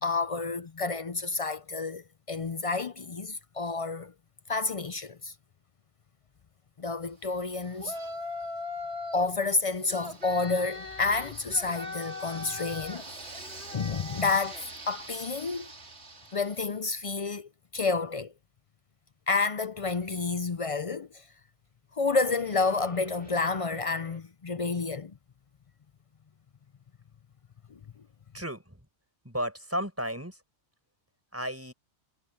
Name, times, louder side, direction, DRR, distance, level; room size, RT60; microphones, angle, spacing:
voice 1, 0.0-4.1 4.5-5.3 6.8-8.0 9.1-13.0 13.7-15.7 16.3-18.3 19.3-21.3 21.9-25.2 27.7-27.8, left 4 dB, 45° left, 0.4 m, -30 dB
Yell, 7.8-9.3 9.9-16.6, left 1 dB, 75° right, 3.5 m, -40 dB
sound 1, 19.8-20.2 22.2-24.2, right 1 dB, 30° right, 6.2 m, -49 dB
voice 2, 28.3-28.8 29.2-30.4 31.3-31.7, equal, 10° right, 5.5 m, -33 dB
omnidirectional pair, 1.1 m